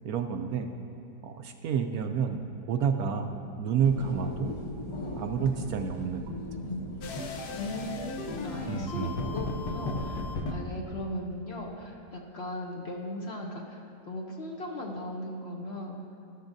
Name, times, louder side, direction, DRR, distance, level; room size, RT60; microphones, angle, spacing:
voice 1, 0.0-0.7 1.2-2.4 2.7-4.5 5.2-6.3 8.7-9.1, right 7 dB, 70° right, 5 dB, 0.9 m, -29 dB
sound 1, 3.8-10.3, left 1 dB, 30° left, 0.5 m, -39 dB
sound 2, 7.0-10.6, left 3 dB, 70° left, 1.3 m, -36 dB
voice 2, 7.5-13.8 14.1-16.0, left 1 dB, 50° left, -1 dB, 0.9 m, -38 dB
13.5 x 12.5 x 2.6 m, 2.7 s
omnidirectional pair, 1.8 m